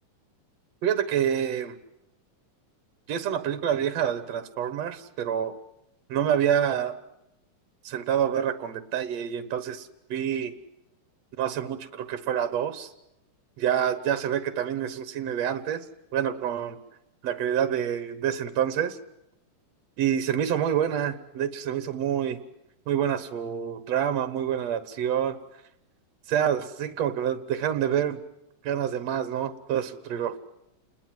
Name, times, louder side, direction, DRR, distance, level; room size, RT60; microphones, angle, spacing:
voice 1, 0.8-1.8 3.1-5.5 6.1-6.9 7.8-10.5 11.4-12.9 13.6-15.8 16.1-16.8 17.2-19.0 20.0-22.4 22.9-25.4 26.3-28.2 28.6-30.4, right 9 dB, 65° right, 11 dB, 2.3 m, -27 dB
29.5 x 21.5 x 7.7 m, 0.86 s
omnidirectional pair, 3.5 m